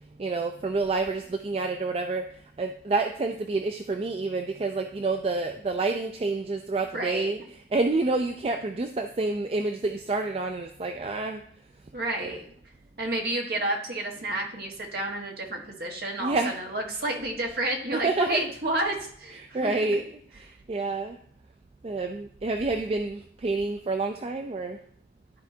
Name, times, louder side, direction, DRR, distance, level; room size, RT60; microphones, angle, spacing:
voice 1, 0.2-2.2 2.6-7.4 7.7-11.4 12.2-12.4 16.2-16.6 17.9-18.4 19.3-21.2 21.8-24.8, right 3 dB, 35° right, 6 dB, 0.4 m, -28 dB
voice 2, 6.9-7.3 11.9-12.5 13.0-19.7, right 1 dB, 55° right, 1 dB, 1.4 m, -30 dB
12.0 x 4.6 x 2.7 m, 0.62 s
head